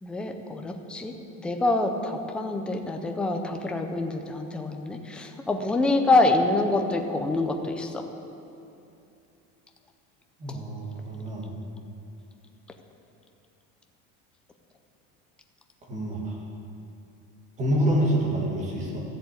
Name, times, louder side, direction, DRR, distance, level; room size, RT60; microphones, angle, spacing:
voice 1, 0.0-8.0 10.5-10.6, left 2 dB, 5° left, 4 dB, 0.3 m, -26 dB
voice 2, 10.4-11.5 15.9-16.4 17.6-19.0, equal, 20° right, -2 dB, 2.1 m, -27 dB
13.0 x 7.6 x 8.3 m, 2.7 s
cardioid pair, 180°, 35 cm